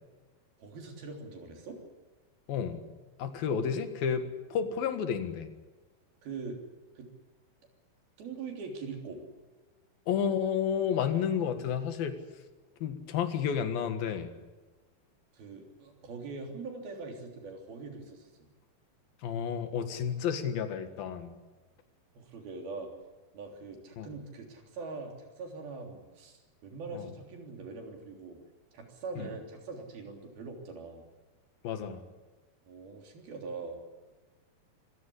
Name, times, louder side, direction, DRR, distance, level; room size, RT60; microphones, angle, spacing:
voice 1, 0.6-1.8 6.2-6.6 7.0-7.1 8.2-9.2 15.3-18.5 22.2-22.9 23.3-28.4 28.7-31.1 32.7-33.8, right 4 dB, 90° right, 3 dB, 5.3 m, -42 dB
voice 2, 2.5-2.8 3.2-5.5 10.1-12.2 12.8-14.4 19.2-21.3 24.0-24.1 26.9-27.1 29.2-29.3 31.6-32.0, left 7 dB, 80° left, 8 dB, 3.5 m, -31 dB
25.5 x 16.0 x 10.0 m, 1.2 s
omnidirectional pair, 4.2 m